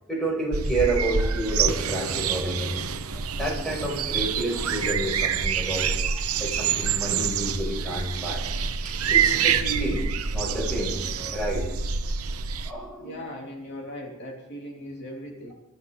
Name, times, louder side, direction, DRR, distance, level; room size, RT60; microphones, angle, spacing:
voice 1, 0.1-2.9 3.4-8.4 9.1-10.0 10.3-11.7 12.6-13.2, right 1 dB, ahead, -3 dB, 6.1 m, -29 dB
sound 1, 0.5-12.7, right 6 dB, 80° right, 1.0 m, -26 dB
voice 2, 13.0-15.5, left 1 dB, 55° left, -1 dB, 3.2 m, -38 dB
24.5 x 14.5 x 3.9 m, 0.92 s
head